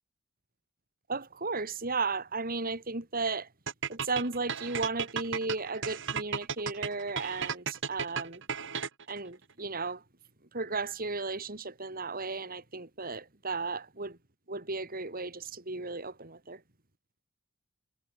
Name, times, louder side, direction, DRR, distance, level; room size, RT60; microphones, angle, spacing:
voice 1, 1.1-3.5 3.9-8.4 9.1-10.0 10.5-14.2 14.5-16.6, right 3 dB, 40° right, 3.5 m, -35 dB
sound 1, 3.7-9.2, right 6 dB, 55° right, 4.1 m, -34 dB
head